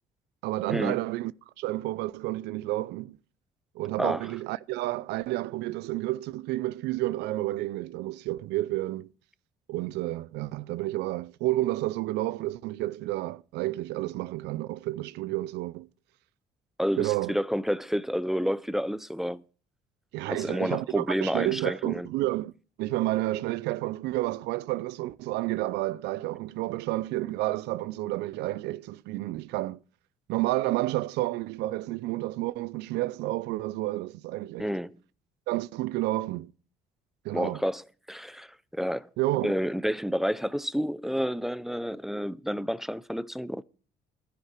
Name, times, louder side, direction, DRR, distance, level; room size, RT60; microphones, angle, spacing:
voice 1, 0.4-1.3 1.6-3.2 3.8-9.1 9.7-15.9 17.0-17.4 20.1-22.5 22.8-29.8 30.3-34.7 35.5-36.5 37.2-37.6 39.2-39.5, right 17 dB, 85° right, 0.5 m, -30 dB
voice 2, 16.8-19.4 20.3-22.1 34.6-35.0 37.3-39.1 39.4-43.6, equal, ahead, 0.5 m, -30 dB
12.0 x 10.5 x 4.5 m
cardioid pair, 110°, 17 cm